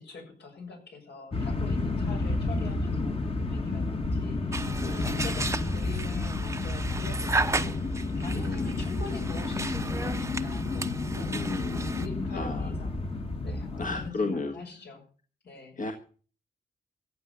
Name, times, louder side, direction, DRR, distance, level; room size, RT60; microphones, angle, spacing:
voice 1, 0.0-15.0 15.4-15.8, left 4 dB, 75° left, 2 dB, 7.1 m, -44 dB
sound 1, 1.3-14.1, left 3 dB, 35° left, 1.7 m, -31 dB
voice 2, 1.6-2.4 4.7-5.2 8.3-8.9 11.3-12.0 12.3-12.7 13.8-14.6 15.8-15.9, left 3 dB, 50° left, 4 dB, 1.7 m, -34 dB
sound 2, 4.5-12.1, right 3 dB, 15° right, 0.8 m, -34 dB
15.0 x 8.2 x 8.4 m, 0.41 s
wide cardioid pair, 115°, 17 cm